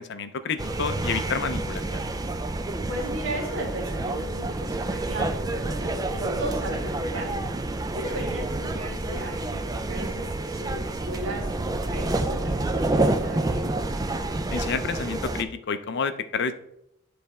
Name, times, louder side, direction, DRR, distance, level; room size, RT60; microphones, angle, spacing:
voice 1, 0.0-2.1 14.5-16.5, left 5 dB, 55° left, 10 dB, 0.5 m, -29 dB
sound 1, 0.6-15.4, right 2 dB, 15° right, 0.3 m, -28 dB
voice 2, 2.9-7.4 7.9-11.5 11.8-13.7, right 1 dB, 60° right, -4 dB, 1.5 m, -35 dB
9.5 x 3.4 x 4.2 m, 0.78 s
head